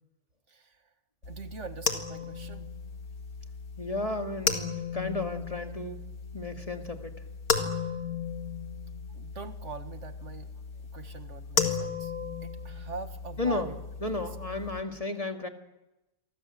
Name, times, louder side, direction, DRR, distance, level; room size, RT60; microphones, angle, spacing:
sound 1, 1.2-14.8, left 5 dB, 85° left, 2.5 m, -35 dB
voice 1, 1.3-2.7 9.1-10.5 10.9-12.1 12.4-13.7, right 4 dB, 55° right, 9 dB, 2.0 m, -43 dB
voice 2, 3.8-6.0 6.3-7.2 13.4-13.7 14.0-15.5, left 2 dB, 25° left, 5 dB, 2.2 m, -33 dB
29.5 x 24.5 x 7.7 m, 1.0 s
omnidirectional pair, 1.5 m